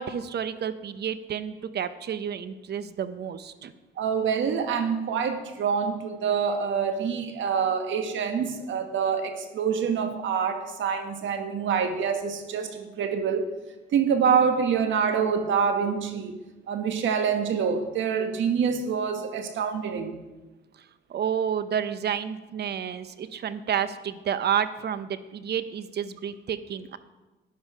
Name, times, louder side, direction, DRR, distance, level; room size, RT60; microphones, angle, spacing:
voice 1, 0.0-3.7 21.1-27.0, right 8 dB, 55° right, 12 dB, 0.8 m, -30 dB
voice 2, 4.0-13.4 13.9-16.3 16.7-20.2, right 6 dB, 75° right, 7 dB, 1.5 m, -26 dB
12.0 x 10.0 x 4.9 m, 1.1 s
cardioid pair, 90°, 20 cm